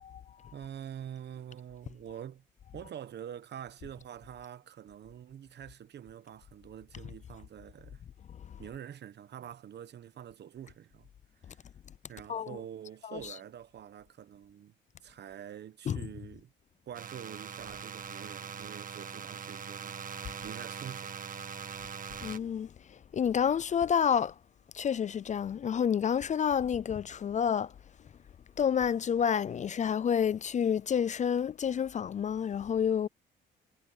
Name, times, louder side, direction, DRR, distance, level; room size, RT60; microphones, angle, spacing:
voice 1, 0.0-0.6 2.8-2.9 8.3-8.6 12.3-12.6 13.0-13.4 15.8-16.1 22.2-24.4 24.7-27.7 28.6-33.1, left 8 dB, 35° left, 0.4 m, -29 dB
voice 2, 0.5-2.4 2.7-8.0 8.6-11.1 11.4-11.6 12.1-14.7 15.0-16.5 16.9-21.2, right 9 dB, 60° right, 1.1 m, -46 dB
sound 1, 16.9-22.4, right 6 dB, 45° right, 1.6 m, -42 dB
cardioid pair, 90°, 20 cm